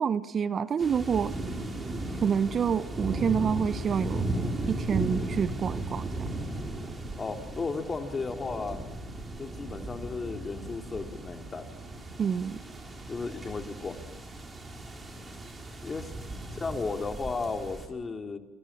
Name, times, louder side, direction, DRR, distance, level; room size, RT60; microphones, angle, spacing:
voice 1, 0.0-1.3 2.2-4.3 4.7-6.2 12.2-12.6, right 7 dB, 40° right, 15 dB, 0.9 m, -27 dB
sound 1, 0.8-17.9, right 1 dB, 20° right, 5.7 m, -36 dB
voice 2, 7.2-8.8 9.4-11.7 13.1-14.0 15.8-16.1 16.5-18.4, left 4 dB, 25° left, 4 dB, 3.2 m, -34 dB
29.0 x 24.5 x 7.5 m, 1.1 s
hypercardioid pair, 75°, 0 cm